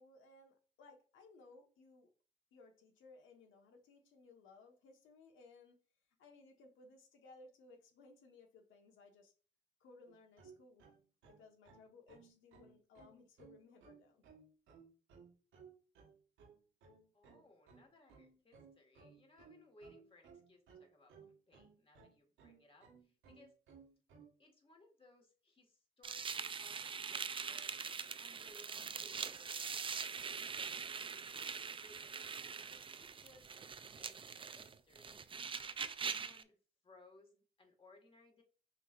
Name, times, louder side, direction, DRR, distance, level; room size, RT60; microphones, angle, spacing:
voice 1, 0.0-2.1 2.5-5.8 6.2-9.3 9.8-10.9 11.2-14.2, left 3 dB, 80° left, 3 dB, 1.3 m, -61 dB
sound 1, 10.1-24.4, right 5 dB, 80° right, 1.5 m, -61 dB
voice 2, 17.1-23.6 24.4-27.7 28.2-29.7 30.3-32.2 32.7-33.5 33.9-35.2 35.6-36.5 36.8-38.4, left 2 dB, 25° left, 3 dB, 1.7 m, -65 dB
sound 2, 26.0-36.4, right 6 dB, 25° right, 0.4 m, -43 dB
5.7 x 3.3 x 2.5 m, 0.38 s
cardioid pair, 90°, 20 cm